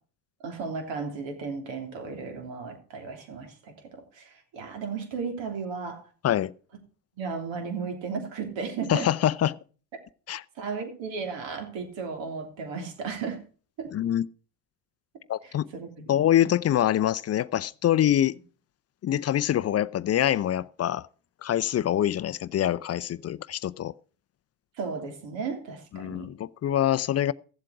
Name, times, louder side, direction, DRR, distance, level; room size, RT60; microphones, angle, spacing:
voice 1, 0.4-6.1 7.2-9.1 10.5-13.4 13.8-13.9 15.4-16.1 16.4-16.5 24.7-26.3, right 5 dB, 65° right, 3.3 m, -35 dB
voice 2, 8.9-9.6 10.3-10.4 13.9-14.2 15.3-15.7 16.1-18.4 19.0-21.1 21.4-23.9 25.9-27.3, left 11 dB, 30° left, 0.5 m, -25 dB
15.0 x 7.6 x 4.7 m
hypercardioid pair, 70°, 49 cm